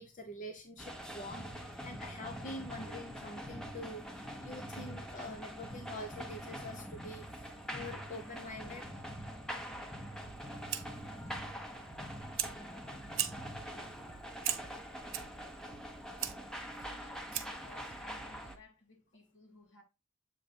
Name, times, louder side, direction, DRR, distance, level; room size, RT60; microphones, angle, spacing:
voice 1, 0.0-8.9, left 1 dB, 40° left, 0.7 m, -46 dB
sound 1, 0.8-18.5, equal, 5° left, 0.8 m, -44 dB
sound 2, 1.2-1.3 2.1-3.4 4.3-5.3 5.5-5.6 6.5-7.0 7.5-7.6 8.6-9.9 10.3-10.5 10.8-12.2 12.5-12.7 13.0-14.3 14.6-14.8 15.2-16.5 16.8-17.0 17.4-18.6, right 4 dB, 35° right, 0.4 m, -58 dB
Fire, 10.2-17.7, right 11 dB, 75° right, 0.8 m, -41 dB
voice 2, 16.6-19.8, left 3 dB, 75° left, 2.3 m, -59 dB
7.6 x 3.3 x 4.2 m
head